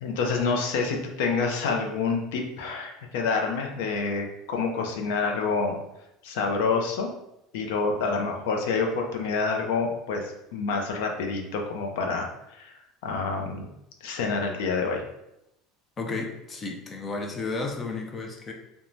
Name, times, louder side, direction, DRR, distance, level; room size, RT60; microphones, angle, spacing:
voice 1, 0.0-5.8 6.2-7.1 7.5-13.7 14.0-15.0, left 4 dB, 85° left, 2 dB, 0.5 m, -28 dB
voice 2, 16.0-18.5, left 3 dB, 20° left, 2 dB, 0.3 m, -33 dB
3.1 x 2.1 x 2.5 m, 0.86 s
cardioid pair, 170°, 0 cm